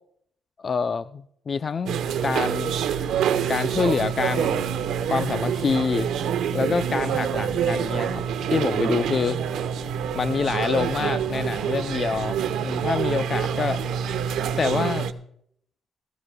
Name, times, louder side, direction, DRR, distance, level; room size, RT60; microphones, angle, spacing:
voice 1, 0.6-2.8 3.3-4.7 5.1-6.1 6.5-8.2 8.5-9.4 10.1-13.8 14.6-15.1, left 5 dB, 40° left, 12 dB, 0.4 m, -26 dB
sound 1, 1.9-15.1, right 8 dB, 80° right, 0.8 m, -26 dB
20.5 x 14.0 x 2.2 m, 0.70 s
cardioid pair, 90°, 0 cm